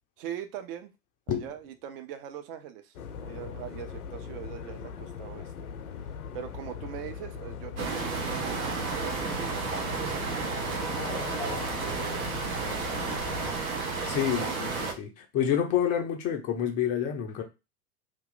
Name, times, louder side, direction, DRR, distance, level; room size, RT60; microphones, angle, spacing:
voice 1, 0.2-0.9 1.3-5.5 6.3-10.9 11.4-13.6 14.4-14.5, right 10 dB, 40° right, 9 dB, 0.5 m, -42 dB
sound 1, 2.9-13.6, left 6 dB, 70° left, 0.6 m, -40 dB
sound 2, 7.8-14.9, right 4 dB, 65° right, 1.0 m, -32 dB
voice 2, 14.1-17.4, left 9 dB, 20° left, 4 dB, 0.4 m, -28 dB
2.8 x 2.4 x 3.8 m, 0.26 s
figure-of-eight pair, 90°, 46 cm